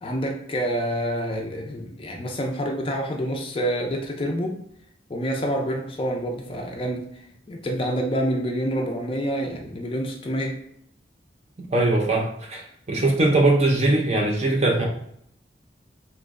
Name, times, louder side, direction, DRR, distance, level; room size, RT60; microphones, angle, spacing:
voice 1, 0.0-4.6 5.1-7.2 7.5-10.6, equal, 30° left, 1 dB, 0.4 m, -27 dB
voice 2, 11.7-14.8, right 2 dB, 35° right, 0 dB, 0.5 m, -21 dB
3.0 x 2.1 x 3.6 m, 0.70 s
head